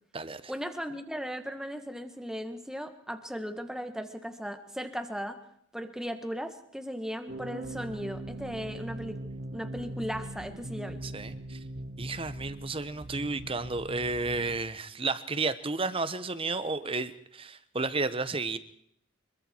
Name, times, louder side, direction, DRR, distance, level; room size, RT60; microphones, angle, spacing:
voice 1, 0.5-5.4 5.7-9.2 9.5-11.0, equal, 5° right, 7 dB, 1.7 m, -37 dB
sound 1, 7.3-14.6, right 1 dB, 45° right, 1.3 m, -41 dB
voice 2, 11.0-11.6 12.0-18.6, right 3 dB, 25° right, 13 dB, 1.1 m, -32 dB
25.5 x 23.0 x 4.6 m, 0.70 s
head